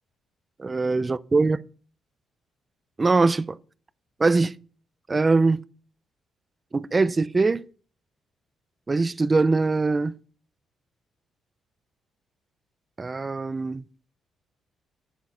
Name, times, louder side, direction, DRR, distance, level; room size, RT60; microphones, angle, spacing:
voice 1, 0.6-1.6 3.0-3.6 4.2-4.5 5.1-5.6 6.7-7.6 8.9-10.1 13.0-13.8, right 3 dB, 25° right, 0.5 m, -22 dB
10.5 x 7.4 x 5.6 m
cardioid pair, 90°, 0 cm